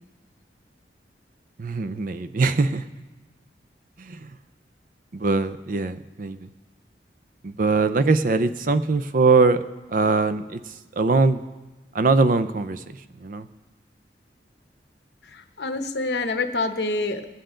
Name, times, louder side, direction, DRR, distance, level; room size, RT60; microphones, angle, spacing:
voice 1, 1.6-2.9 4.0-4.4 5.1-6.5 7.4-9.6 9.9-11.4 11.9-13.5, right 3 dB, 50° right, 12 dB, 0.5 m, -22 dB
voice 2, 15.2-17.3, left 3 dB, 70° left, 7 dB, 0.9 m, -27 dB
20.5 x 9.0 x 3.8 m, 1.1 s
head